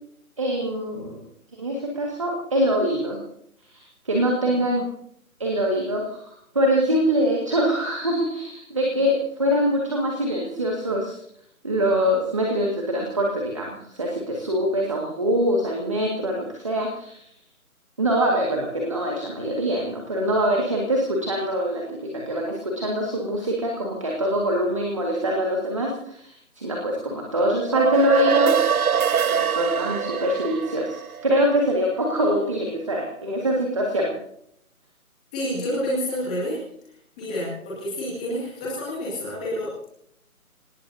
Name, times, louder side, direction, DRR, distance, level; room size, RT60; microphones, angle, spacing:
voice 1, 0.4-1.2 1.6-3.2 3.7-4.8 5.4-9.1 9.4-11.2 11.6-17.2 18.0-22.0 22.3-28.5 29.2-34.1, equal, 20° right, -1 dB, 1.9 m, -24 dB
sound 1, 27.6-32.2, right 7 dB, 80° right, 0.8 m, -24 dB
voice 2, 35.3-36.6 37.2-39.9, equal, 5° left, -8 dB, 2.2 m, -29 dB
27.0 x 18.5 x 2.8 m, 0.70 s
figure-of-eight pair, 180°, 43 cm